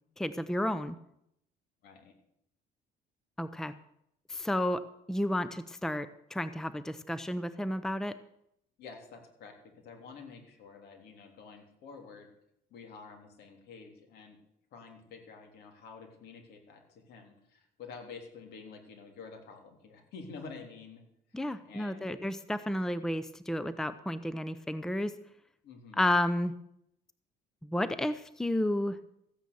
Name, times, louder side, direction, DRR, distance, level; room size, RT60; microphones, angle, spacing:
voice 1, 0.2-1.0 3.4-3.7 4.3-4.8 5.1-8.2 21.3-25.1 26.0-26.5 27.6-29.0, left 1 dB, 5° left, 13 dB, 0.6 m, -31 dB
voice 2, 1.8-2.1 8.8-12.3 12.7-14.4 14.7-21.0 21.4-22.2 25.6-26.1, left 5 dB, 75° left, 3 dB, 3.3 m, -49 dB
14.5 x 9.3 x 6.9 m, 0.77 s
cardioid pair, 110°, 17 cm